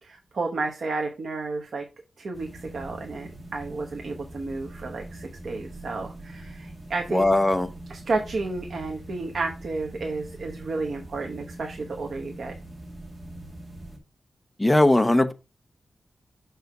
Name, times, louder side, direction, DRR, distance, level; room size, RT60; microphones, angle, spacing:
voice 1, 0.0-1.8 2.2-7.2 7.9-12.5, right 3 dB, 60° right, 1.1 m, -32 dB
sound 1, 2.3-14.0, right 1 dB, 30° right, 1.5 m, -42 dB
voice 2, 7.1-7.7 14.6-15.3, left 1 dB, 10° left, 0.6 m, -19 dB
6.5 x 4.6 x 4.6 m
wide cardioid pair, 175°, 0 cm